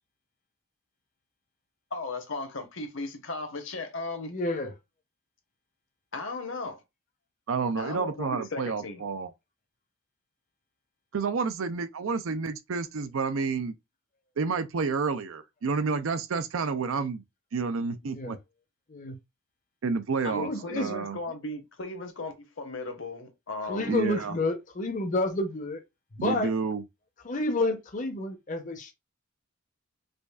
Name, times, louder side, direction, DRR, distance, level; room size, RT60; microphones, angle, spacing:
voice 1, 1.9-4.3 6.1-6.8 7.7-9.1 20.2-24.0, left 2 dB, 60° left, 1.0 m, -36 dB
voice 2, 4.3-4.7 18.0-18.4 18.9-19.2 20.4-20.9 23.7-25.8 26.2-26.5 27.2-28.9, left 2 dB, 35° left, 0.7 m, -30 dB
voice 3, 7.5-9.3 11.1-13.7 14.4-17.2 17.5-18.4 19.8-21.2 23.9-24.3 26.2-26.8, right 4 dB, 65° right, 0.5 m, -30 dB
5.0 x 2.4 x 2.3 m
head